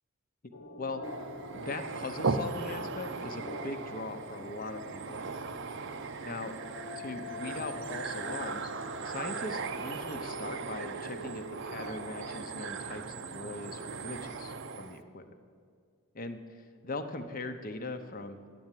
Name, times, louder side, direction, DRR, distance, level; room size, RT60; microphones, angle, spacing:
sound 1, 0.5-12.3, left 1 dB, 80° left, 1.2 m, -46 dB
voice 1, 0.8-1.2 1.5-5.2 6.2-6.6 6.9-8.7 9.0-15.3 16.1-16.4 16.8-18.4, left 3 dB, 40° left, 8 dB, 0.7 m, -40 dB
sound 2, 1.0-15.0, right 4 dB, 55° right, 0.6 m, -38 dB
9.6 x 7.8 x 9.0 m, 2.1 s
head